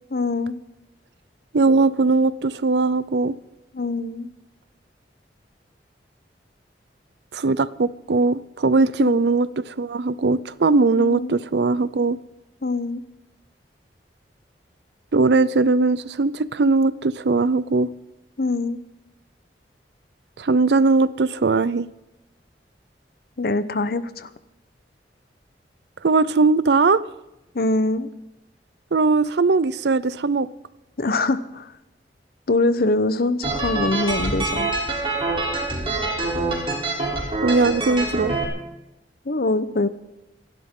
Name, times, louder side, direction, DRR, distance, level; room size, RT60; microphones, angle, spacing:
voice 1, 0.1-0.6 3.7-4.3 9.0-9.2 11.0-11.3 12.6-13.0 18.4-18.8 23.4-24.3 27.5-28.1 31.0-31.7 32.5-34.7 39.2-39.9, left 2 dB, 60° left, 13 dB, 0.8 m, -23 dB
voice 2, 1.5-3.4 7.3-12.2 15.1-17.9 20.4-21.9 26.0-27.0 28.9-30.5 37.4-38.3, right 3 dB, 70° right, 18 dB, 0.5 m, -19 dB
sound 1, 33.4-38.4, right 2 dB, 30° right, 3.5 m, -25 dB
27.5 x 12.0 x 3.8 m, 0.95 s
head